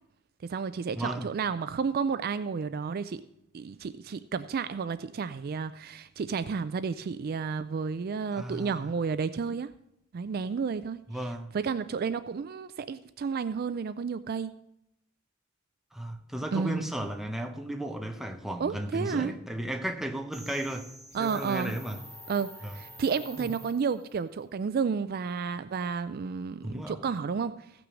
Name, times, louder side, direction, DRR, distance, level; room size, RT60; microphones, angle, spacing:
voice 1, 0.4-3.2 3.5-9.7 10.1-11.0 11.5-14.5 16.5-16.9 18.6-19.3 21.1-21.8 22.3-27.7, right 5 dB, 50° right, 13 dB, 0.4 m, -31 dB
voice 2, 1.0-1.3 8.3-8.9 11.1-11.5 15.9-20.9 21.2-22.0 22.6-22.7 23.4-23.5 26.6-27.0, right 1 dB, ahead, 4 dB, 0.9 m, -34 dB
sound 1, 20.3-24.2, equal, 15° left, 5.6 m, -48 dB
15.5 x 6.1 x 6.2 m, 0.79 s
head